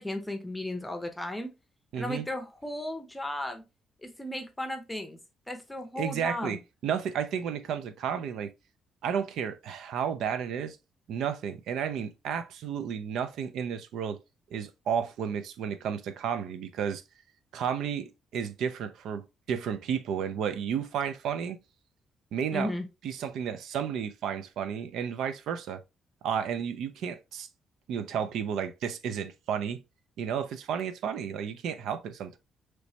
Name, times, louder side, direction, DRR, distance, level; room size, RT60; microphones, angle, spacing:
voice 1, 0.0-1.5 1.9-3.6 4.0-5.2 5.5-6.6 22.5-22.9, left 1 dB, 10° left, 0.7 m, -35 dB
voice 2, 1.9-2.3 6.0-8.5 9.0-10.8 11.1-14.2 14.5-17.0 17.5-19.2 19.5-21.6 22.3-22.7 23.0-25.8 26.2-27.5 27.9-29.8 30.2-32.4, right 7 dB, 80° right, 0.4 m, -32 dB
3.1 x 3.1 x 2.7 m
cardioid pair, 90°, 0 cm